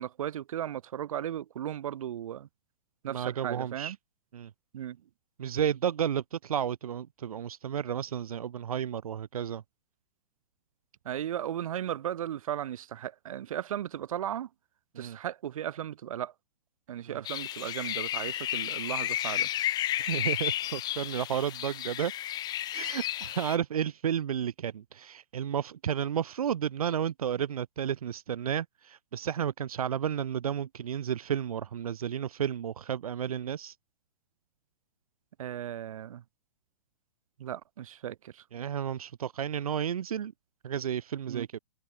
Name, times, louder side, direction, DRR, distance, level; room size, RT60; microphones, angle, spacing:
voice 1, 0.0-2.5 3.0-4.0 4.7-5.0 11.1-14.5 15.0-16.3 16.9-19.5 35.4-36.2 37.4-38.4 41.3-41.5, right 10 dB, 70° right, 2.0 m, -36 dB
voice 2, 3.1-3.9 4.3-4.5 5.4-9.6 14.9-15.2 17.1-17.2 20.0-22.1 22.7-33.7 38.5-40.3 40.6-41.6, right 9 dB, 90° right, 1.1 m, -32 dB
sound 1, 17.2-23.6, left 13 dB, 20° left, 1.9 m, -32 dB
hypercardioid pair, 150°, 18 cm